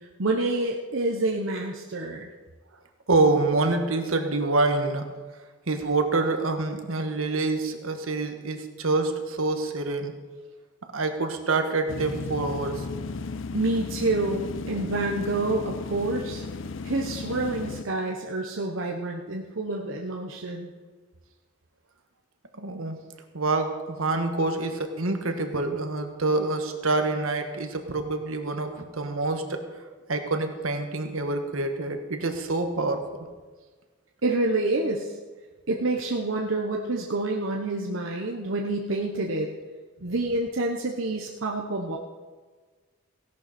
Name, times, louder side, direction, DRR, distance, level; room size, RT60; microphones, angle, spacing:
voice 1, 0.2-2.3 13.5-16.4 16.8-20.7 34.2-35.1 35.7-39.5 40.0-42.0, right 2 dB, 70° right, 0 dB, 1.0 m, -28 dB
voice 2, 3.1-5.1 5.7-10.1 10.9-12.9 22.6-23.0 23.3-29.6 30.1-33.3, right 3 dB, 90° right, 6 dB, 1.5 m, -26 dB
sound 1, 11.9-17.8, left 3 dB, 65° left, 0.5 m, -35 dB
16.5 x 11.5 x 4.3 m, 1.4 s
head